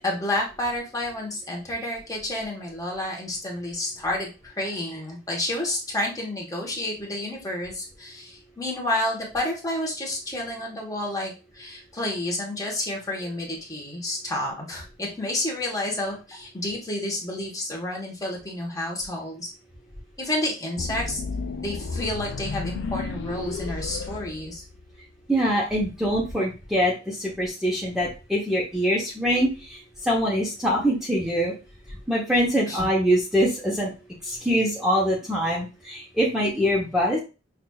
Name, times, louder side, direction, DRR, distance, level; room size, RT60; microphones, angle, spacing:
voice 1, 0.0-19.5 20.2-21.2 21.6-24.6 32.7-32.9, left 1 dB, 20° left, -2 dB, 1.1 m, -30 dB
sound 1, 20.8-25.0, left 4 dB, 65° left, 0.5 m, -33 dB
voice 2, 25.3-31.5 32.1-33.9 34.2-37.2, equal, 5° right, -5 dB, 0.8 m, -24 dB
5.8 x 2.4 x 2.3 m, 0.30 s
head